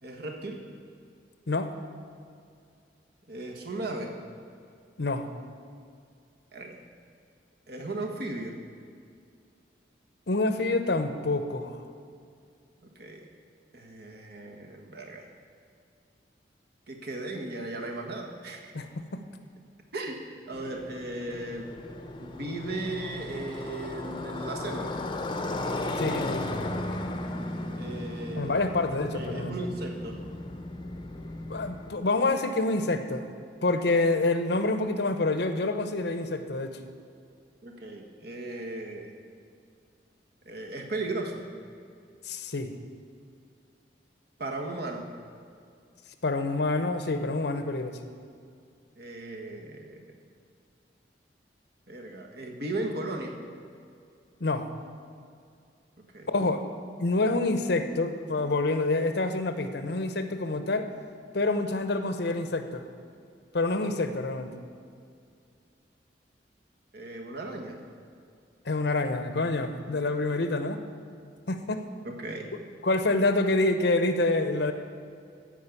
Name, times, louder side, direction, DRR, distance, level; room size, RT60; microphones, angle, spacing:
voice 1, 0.0-0.6 3.3-4.1 6.5-6.8 7.7-8.6 12.8-13.3 13.7-15.3 16.9-18.7 19.9-21.8 22.2-25.0 27.8-28.6 29.1-30.2 37.6-39.2 40.4-41.4 44.4-45.1 48.9-50.1 51.9-53.3 56.1-56.3 66.9-67.8 72.0-72.5, right 2 dB, 65° right, 2 dB, 1.5 m, -36 dB
voice 2, 10.3-11.8 18.7-19.2 26.0-26.5 28.3-29.5 31.5-33.3 33.6-36.8 42.2-42.7 46.2-48.0 54.4-54.7 56.3-56.6 57.0-60.9 61.3-62.9 63.5-64.5 68.7-70.8 71.5-71.9 72.8-74.7, left 2 dB, 65° left, 8 dB, 0.8 m, -27 dB
Motorcycle, 20.5-32.0, left 2 dB, 25° left, 0.8 m, -35 dB
14.0 x 5.2 x 8.4 m, 2.3 s
head